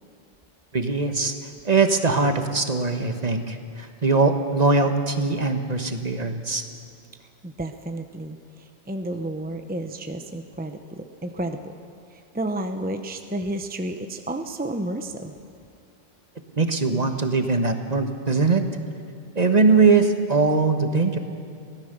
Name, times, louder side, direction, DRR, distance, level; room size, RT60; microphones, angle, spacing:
voice 1, 0.7-1.3 1.6-6.6 16.6-18.6 19.3-21.2, right 4 dB, 40° right, 7 dB, 1.3 m, -21 dB
voice 2, 7.4-11.7 12.1-15.3, right 1 dB, 10° right, 6 dB, 0.8 m, -31 dB
24.0 x 16.5 x 6.8 m, 2.6 s
omnidirectional pair, 1.1 m